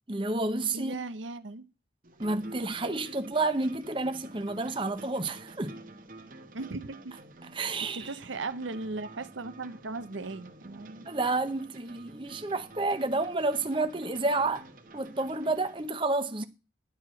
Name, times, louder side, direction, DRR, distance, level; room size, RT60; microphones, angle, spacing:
voice 1, 0.1-1.0 2.2-5.8 7.5-8.1 11.1-14.6 14.9-16.4, right 2 dB, 25° right, 0.8 m, -30 dB
voice 2, 0.7-1.7 6.5-7.2 7.8-11.1, right 3 dB, 85° right, 0.8 m, -38 dB
sound 1, 2.0-15.9, right 2 dB, 45° right, 1.2 m, -50 dB
10.5 x 4.8 x 7.6 m
head